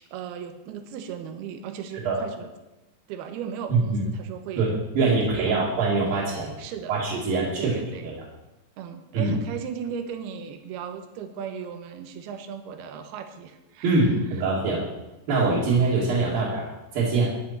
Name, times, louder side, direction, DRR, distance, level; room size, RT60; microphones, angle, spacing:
voice 1, 0.1-2.5 3.1-4.7 5.0-5.8 6.3-7.0 7.6-8.1 8.8-14.1 16.3-16.4, right 7 dB, 75° right, 7 dB, 2.8 m, -37 dB
voice 2, 3.7-4.0 4.6-6.5 6.9-7.8 9.1-9.3 13.8-14.8 15.3-17.3, right 3 dB, 60° right, -7 dB, 4.0 m, -23 dB
14.0 x 10.5 x 4.4 m, 1.0 s
omnidirectional pair, 4.8 m